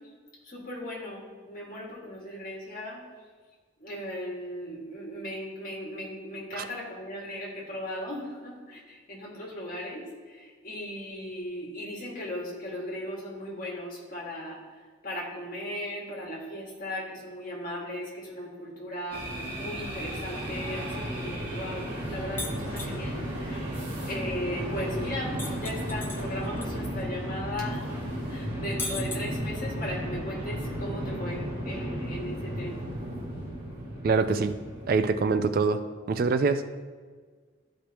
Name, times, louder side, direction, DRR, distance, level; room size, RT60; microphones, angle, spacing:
voice 1, 0.4-3.0 3.8-14.6 15.0-19.2 19.6-23.6 24.1-28.0 28.3-32.7, left 1 dB, 45° left, -4 dB, 2.0 m, -37 dB
sound 1, 19.1-35.4, right 1 dB, 25° right, 2.2 m, -34 dB
sound 2, 22.4-22.9 25.4-26.7 27.0-27.1 28.8-29.7, left 2 dB, 10° left, 0.6 m, -36 dB
voice 2, 34.0-34.6 34.9-35.8 36.1-36.6, right 4 dB, 45° right, 10 dB, 0.3 m, -24 dB
12.5 x 5.1 x 3.0 m, 1.5 s
head